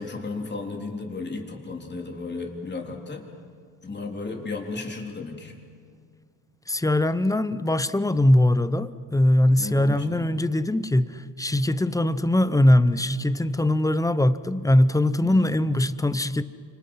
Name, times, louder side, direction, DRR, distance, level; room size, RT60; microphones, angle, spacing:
voice 1, 0.0-3.3 3.8-5.5 9.6-10.3 15.2-15.5, left 3 dB, 25° left, 1 dB, 3.7 m, -34 dB
voice 2, 6.7-16.4, left 1 dB, 10° left, 14 dB, 0.7 m, -21 dB
30.0 x 26.0 x 5.7 m, 2.2 s
cardioid pair, 115°, 45 cm